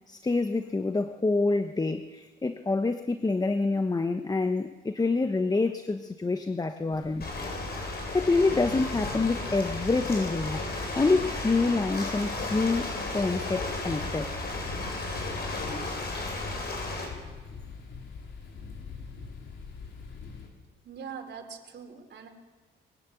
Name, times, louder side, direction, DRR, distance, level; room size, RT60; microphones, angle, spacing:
voice 1, 0.1-7.3 8.1-10.6 10.9-12.9 13.1-14.3, left 3 dB, 20° left, 8 dB, 1.1 m, -27 dB
sound 1, 6.9-20.5, left 5 dB, 70° left, 4.8 m, -44 dB
Ocean, 7.2-17.1, left 2 dB, 55° left, 7.7 m, -34 dB
voice 2, 20.8-22.3, right 6 dB, 60° right, 4 dB, 3.9 m, -42 dB
22.5 x 17.0 x 8.5 m, 1.4 s
cardioid pair, 90°, 20 cm